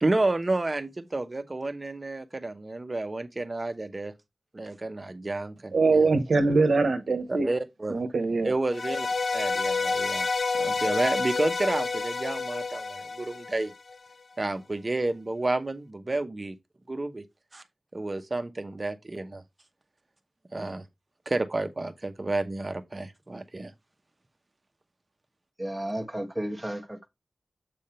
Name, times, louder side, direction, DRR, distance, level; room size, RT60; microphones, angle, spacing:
voice 1, 0.0-4.1 4.5-6.1 7.3-8.0 8.4-9.1 9.3-10.3 10.6-13.7 14.4-16.6 16.9-17.2 17.5-17.6 17.9-19.4 20.5-20.8 21.3-23.7, right 2 dB, 35° right, 0.9 m, -30 dB
voice 2, 5.7-7.5 7.9-8.5, right 3 dB, 85° right, 0.9 m, -23 dB
sound 1, 8.7-14.0, left 4 dB, 65° left, 0.3 m, -29 dB
voice 3, 25.6-27.1, right 1 dB, 5° right, 1.3 m, -33 dB
7.7 x 3.5 x 4.3 m
wide cardioid pair, 70°, 0 cm